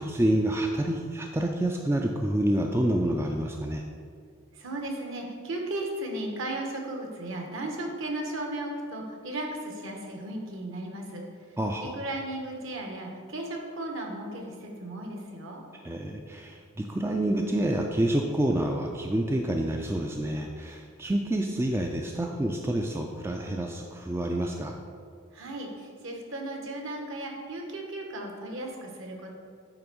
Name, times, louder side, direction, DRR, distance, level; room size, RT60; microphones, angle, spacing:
voice 1, 0.0-3.8 11.6-11.9 15.8-24.7, right 1 dB, 10° right, 2 dB, 0.3 m, -28 dB
voice 2, 4.5-11.2 11.9-15.6 25.3-29.3, right 1 dB, 60° right, 1 dB, 1.2 m, -35 dB
8.7 x 3.5 x 6.1 m, 2.1 s
head